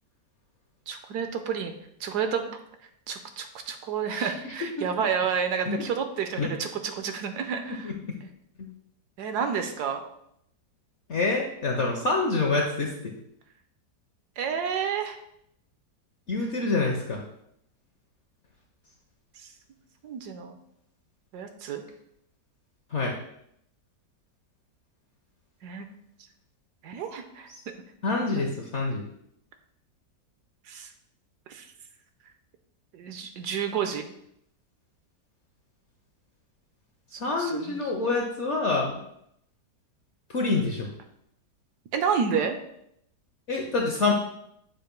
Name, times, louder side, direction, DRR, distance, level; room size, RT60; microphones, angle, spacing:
voice 1, 0.9-1.7 2.0-2.5 3.1-7.9 8.2-8.3 9.2-10.0 14.4-15.2 20.0-20.6 21.3-21.8 25.6-25.9 26.8-27.5 28.4-28.5 30.7-30.9 31.5-31.6 32.9-34.1 37.1-37.8 41.9-42.6, right 7 dB, 70° right, 7 dB, 1.1 m, -30 dB
voice 2, 4.1-4.8 5.7-5.9 6.4-6.5 7.8-7.9 8.6-8.7 11.1-13.1 16.3-17.2 22.9-23.1 28.0-29.0 37.2-38.9 40.3-40.9 43.5-44.1, left 3 dB, 60° left, 1 dB, 0.8 m, -27 dB
7.5 x 2.5 x 5.1 m, 0.74 s
omnidirectional pair, 1.9 m